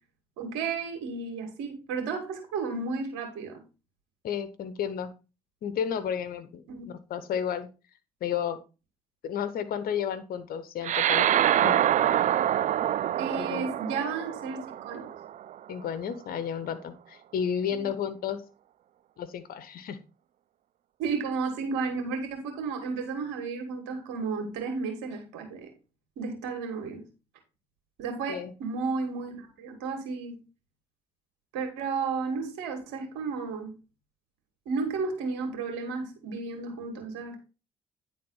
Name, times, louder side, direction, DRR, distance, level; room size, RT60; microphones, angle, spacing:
voice 1, 0.4-3.6 6.7-6.8 13.2-14.6 14.8-15.1 17.8-17.9 21.0-25.7 26.2-27.0 28.0-30.4 31.5-33.7 34.7-37.4, right 4 dB, 85° right, 4 dB, 2.3 m, -33 dB
voice 2, 4.2-5.1 5.6-7.7 8.2-8.6 9.2-11.3 11.6-11.8 13.4-13.6 15.7-18.4 19.2-20.0 28.3-28.5, left 8 dB, 70° left, 12 dB, 1.2 m, -32 dB
sound 1, 10.8-15.6, right 11 dB, 55° right, 0.4 m, -26 dB
9.8 x 3.9 x 5.6 m, 0.31 s
supercardioid pair, 55°, 16 cm